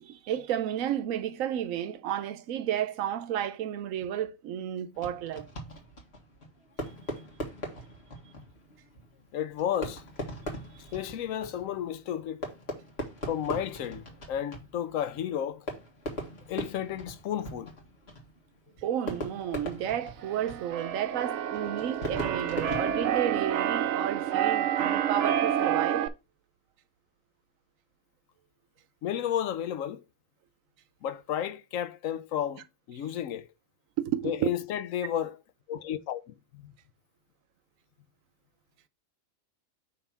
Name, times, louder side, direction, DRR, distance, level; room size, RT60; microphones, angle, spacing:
voice 1, 0.0-5.5 18.8-26.1 34.0-34.5, right 10 dB, 90° right, 1.0 m, -32 dB
Fireworks, 4.9-23.8, right 1 dB, 50° left, 1.8 m, -41 dB
voice 2, 9.3-10.0 10.9-12.4 13.3-15.7 16.5-17.7 29.0-30.0 31.0-33.5 34.2-35.4 35.7-36.2 36.5-36.7, left 10 dB, 85° left, 1.1 m, -32 dB
Keyboard (musical), 20.2-26.1, right 10 dB, 70° right, 0.9 m, -29 dB
5.5 x 3.6 x 5.7 m
omnidirectional pair, 1.4 m